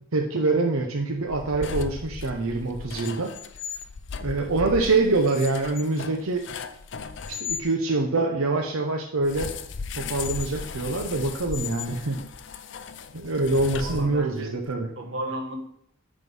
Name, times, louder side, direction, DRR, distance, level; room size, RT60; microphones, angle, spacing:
voice 1, 0.1-3.3 4.2-6.4 7.3-9.5 10.0-12.2 13.1-14.9, right 3 dB, 90° right, 2 dB, 0.8 m, -25 dB
sound 1, 1.2-7.7 9.2-14.5, left 6 dB, 55° left, 0.5 m, -36 dB
voice 2, 13.8-14.7 15.0-15.6, right 1 dB, 65° right, 2 dB, 1.4 m, -34 dB
9.4 x 3.8 x 5.4 m, 0.70 s
head